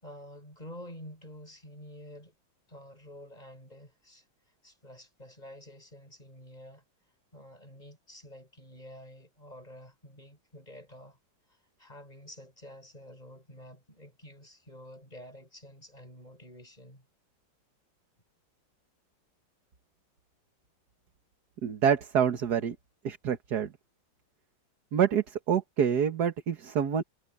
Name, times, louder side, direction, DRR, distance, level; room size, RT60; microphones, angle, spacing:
voice 1, 0.0-2.3 2.7-6.8 7.3-11.2 11.5-17.1, left 1 dB, 20° left, 6.5 m, -49 dB
voice 2, 21.6-22.8 23.0-23.7 24.9-27.0, right 8 dB, 55° right, 1.9 m, -27 dB
omnidirectional pair, 2.1 m